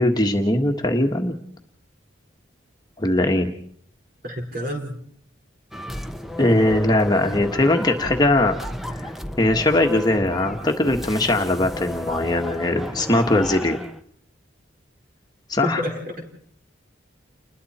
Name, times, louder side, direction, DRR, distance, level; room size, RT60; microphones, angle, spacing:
voice 1, 0.0-1.3 3.0-3.5 6.4-8.6 9.0-9.1 9.4-13.8 15.5-15.8, left 1 dB, 20° left, 3 dB, 1.5 m, -20 dB
voice 2, 4.2-5.0 15.6-16.2, left 1 dB, 45° right, 2 dB, 4.6 m, -29 dB
sound 1, 5.7-14.0, left 1 dB, ahead, 0.8 m, -33 dB
29.5 x 21.0 x 4.3 m, 0.63 s
head